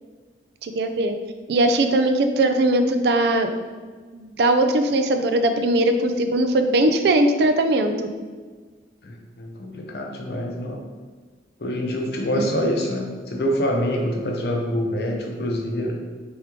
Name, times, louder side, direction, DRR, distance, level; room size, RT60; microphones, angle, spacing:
voice 1, 0.6-1.1 1.5-3.5 4.1-7.9 12.3-12.5, right 1 dB, 65° right, 7 dB, 0.4 m, -20 dB
voice 2, 9.0-10.8 11.6-16.0, equal, 65° left, 0 dB, 0.7 m, -26 dB
3.4 x 3.0 x 3.6 m, 1.4 s
head